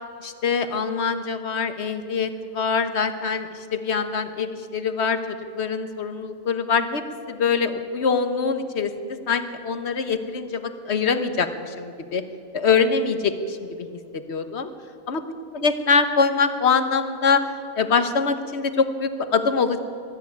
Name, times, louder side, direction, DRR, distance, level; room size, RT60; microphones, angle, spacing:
voice 1, 0.2-12.2 12.5-13.9 14.1-14.7 15.1-15.2 15.6-17.4 17.8-19.8, left 5 dB, 50° left, 9 dB, 1.4 m, -24 dB
22.0 x 13.0 x 9.3 m, 2.6 s
omnidirectional pair, 1.5 m